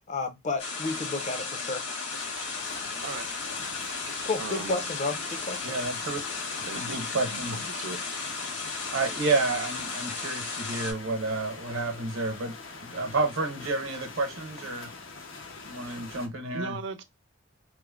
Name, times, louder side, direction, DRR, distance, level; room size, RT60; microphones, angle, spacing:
voice 1, 0.1-1.8 4.2-5.8, left 3 dB, 35° left, 0.5 m, -32 dB
sound 1, 0.6-10.9, left 4 dB, 60° left, 1.3 m, -35 dB
sound 2, 2.1-16.3, left 4 dB, 80° left, 0.7 m, -44 dB
voice 2, 4.4-4.9 6.7-8.0 16.5-17.0, right 4 dB, 65° right, 0.4 m, -38 dB
voice 3, 5.6-6.2 6.7-7.6 8.9-12.6 12.8-14.9 15.6-16.8, right 3 dB, 85° right, 0.8 m, -30 dB
3.1 x 2.0 x 2.3 m
head